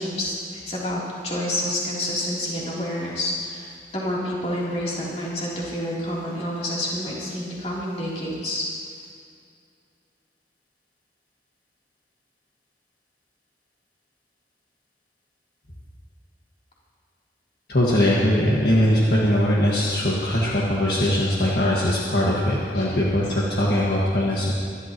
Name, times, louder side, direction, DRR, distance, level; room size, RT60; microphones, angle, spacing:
voice 1, 0.0-8.6 22.7-23.0, left 1 dB, 40° left, -6 dB, 3.4 m, -28 dB
voice 2, 17.7-24.5, left 1 dB, 60° left, -5 dB, 1.8 m, -21 dB
24.0 x 12.0 x 3.1 m, 2.3 s
head